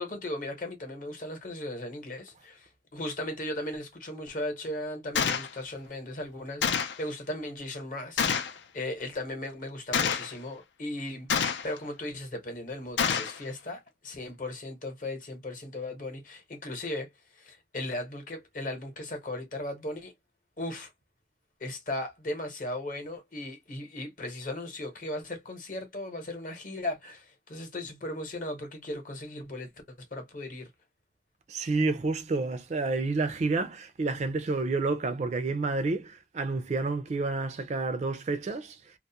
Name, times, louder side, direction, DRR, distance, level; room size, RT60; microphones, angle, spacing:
voice 1, 0.0-17.1 17.3-20.1 20.6-20.9 21.6-29.7 30.1-30.7, left 1 dB, 50° left, 0.9 m, -37 dB
Gunshot gunfire, 5.2-5.5 6.6-7.0 8.2-8.6 9.9-10.3 11.3-11.8 13.0-13.4, left 7 dB, 80° left, 0.4 m, -27 dB
voice 2, 31.5-38.8, right 3 dB, 40° right, 0.4 m, -29 dB
2.3 x 2.0 x 2.6 m
head